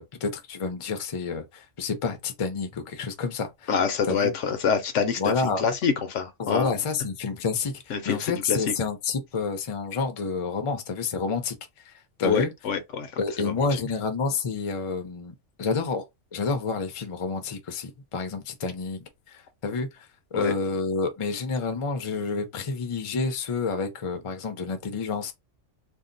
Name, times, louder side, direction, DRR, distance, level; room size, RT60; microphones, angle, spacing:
voice 1, 0.0-3.7 4.0-4.3 5.2-5.6 6.4-11.6 12.2-12.5 13.2-16.0 16.3-19.9 20.3-25.3, left 4 dB, 40° left, 0.5 m, -29 dB
voice 2, 3.7-6.7 7.9-8.6 12.2-13.7 20.3-20.5, left 6 dB, 75° left, 1.0 m, -27 dB
2.7 x 2.1 x 3.8 m
omnidirectional pair, 1.3 m